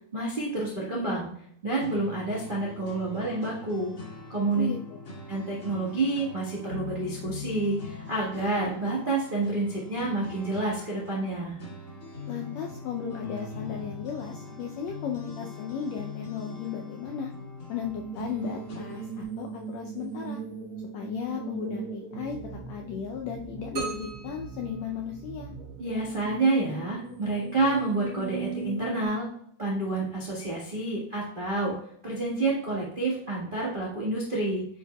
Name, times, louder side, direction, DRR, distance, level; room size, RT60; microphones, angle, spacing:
voice 1, 0.1-1.3 1.6-3.9 4.3-4.7 5.3-11.6 25.8-29.3 29.6-31.8 32.0-34.7, right 2 dB, 85° right, -5 dB, 0.4 m, -29 dB
sound 1, 1.8-19.2, left 3 dB, 35° left, 1.9 m, -42 dB
voice 2, 12.3-17.3 17.7-20.4 20.9-25.5, left 7 dB, 85° left, 1 dB, 1.5 m, -35 dB
sound 2, 17.8-29.1, right 5 dB, 65° right, 2.1 m, -39 dB
sound 3, 23.8-25.7, right 5 dB, 40° right, 2.6 m, -39 dB
9.9 x 4.7 x 2.2 m, 0.66 s
omnidirectional pair, 3.7 m